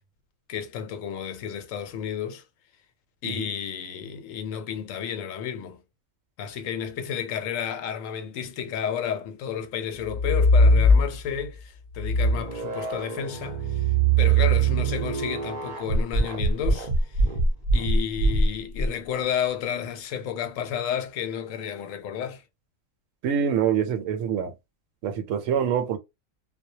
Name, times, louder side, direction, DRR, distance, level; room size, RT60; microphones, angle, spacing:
voice 1, 0.5-2.4 3.2-5.8 6.4-17.3 17.7-22.4, left 8 dB, 80° left, 1.0 m, -32 dB
sound 1, 10.0-11.4 11.9-18.9, right 1 dB, 50° right, 0.7 m, -22 dB
voice 2, 23.2-24.5 25.0-26.0, right 8 dB, 75° right, 0.9 m, -25 dB
2.1 x 2.1 x 2.7 m
omnidirectional pair, 1.3 m